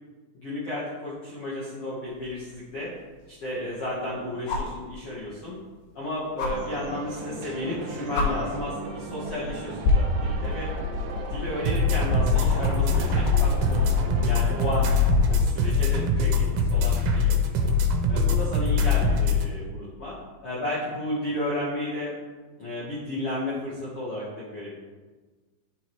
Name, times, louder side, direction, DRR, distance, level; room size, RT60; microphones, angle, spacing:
voice 1, 0.4-2.9 3.3-5.6 6.0-10.7 11.3-14.9 15.3-17.3 17.6-17.8 18.1-20.2 20.4-22.1 22.6-24.7, left 1 dB, 55° left, -8 dB, 1.9 m, -33 dB
sound 1, 2.2-2.3 4.5-4.8 6.4-6.5 7.7-7.8 8.1-8.3 9.2-9.5 9.8-15.5 17.2-17.3, left 2 dB, 80° left, 2.5 m, -27 dB
sound 2, 6.5-14.8, right 3 dB, 70° right, 2.0 m, -38 dB
sound 3, 11.7-19.5, left 3 dB, 90° right, 2.4 m, -23 dB
10.0 x 4.6 x 3.1 m, 1.3 s
omnidirectional pair, 4.0 m